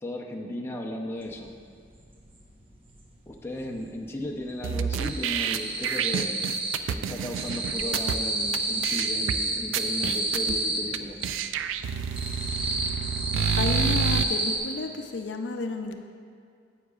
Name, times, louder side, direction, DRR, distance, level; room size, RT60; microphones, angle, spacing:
voice 1, 0.0-1.5 3.3-6.4 6.8-11.2, left 1 dB, 15° left, 0 dB, 0.5 m, -35 dB
sound 1, 1.3-1.4 1.7-3.0 3.3-6.9 7.1-11.3 11.7-14.6, right 2 dB, 30° right, 0.9 m, -30 dB
sound 2, 4.6-8.2 8.5-8.6 8.8-9.4 9.7-10.5 10.9-11.0 11.2-14.2, right 7 dB, 85° right, 0.3 m, -29 dB
voice 2, 13.5-15.9, left 3 dB, 65° left, 5 dB, 0.5 m, -31 dB
9.9 x 8.1 x 2.3 m, 2.2 s
head